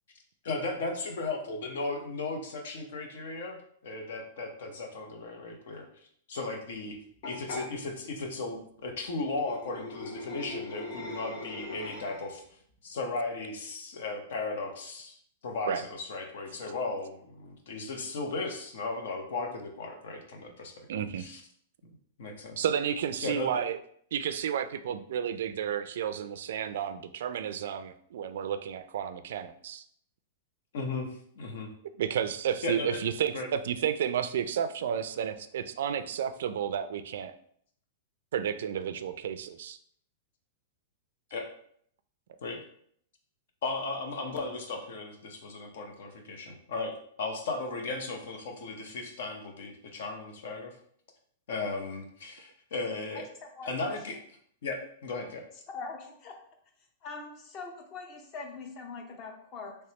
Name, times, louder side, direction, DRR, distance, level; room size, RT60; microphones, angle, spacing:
voice 1, 0.4-3.6 3.8-5.8 6.3-7.0 7.2-12.4 12.8-15.2 15.4-20.9 21.2-21.4 22.2-22.6 23.2-23.6 30.7-31.1 31.4-31.7 32.6-33.0 33.3-33.5 41.3-41.5 42.4-42.6 43.6-50.8 51.5-53.3 53.6-54.2 54.6-55.4, left 3 dB, 75° left, 4 dB, 0.8 m, -36 dB
sound 1, 7.2-7.7 9.3-12.4, left 2 dB, 55° left, 1.1 m, -40 dB
voice 2, 20.9-21.2 22.6-23.8 24.1-29.8 32.0-37.3 38.3-39.8, right 8 dB, 75° right, 11 dB, 0.3 m, -32 dB
voice 3, 53.1-54.0 55.7-56.4 57.0-59.8, left 4 dB, 35° left, 3 dB, 0.7 m, -42 dB
3.2 x 3.1 x 2.9 m, 0.64 s
hypercardioid pair, 140°, 0 cm